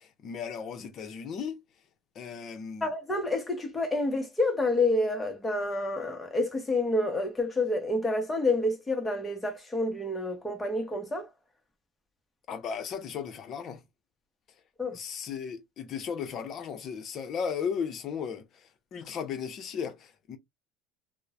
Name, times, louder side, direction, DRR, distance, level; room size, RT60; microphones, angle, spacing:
voice 1, 0.0-1.6 2.1-2.9 12.5-13.8 14.9-20.4, left 6 dB, 40° left, 0.7 m, -36 dB
voice 2, 2.8-11.3 14.8-15.0, left 2 dB, 10° left, 0.8 m, -28 dB
2.9 x 2.1 x 2.4 m
cardioid pair, 155°, 0 cm